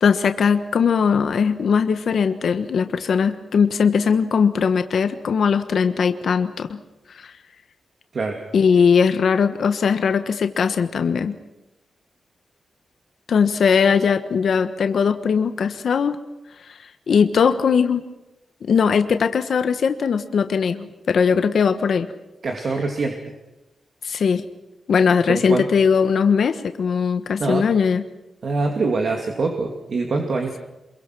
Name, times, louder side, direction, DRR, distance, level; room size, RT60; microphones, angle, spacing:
voice 1, 0.0-6.7 7.1-7.3 8.5-11.3 13.3-16.2 17.1-18.0 18.6-22.1 24.0-24.4 24.9-28.0, left 6 dB, 65° left, 9 dB, 1.2 m, -19 dB
voice 2, 22.4-23.3 25.3-25.7 27.4-27.7 28.4-30.6, right 3 dB, 55° right, 2 dB, 2.4 m, -24 dB
27.0 x 22.5 x 6.2 m, 0.98 s
wide cardioid pair, 145°, 0 cm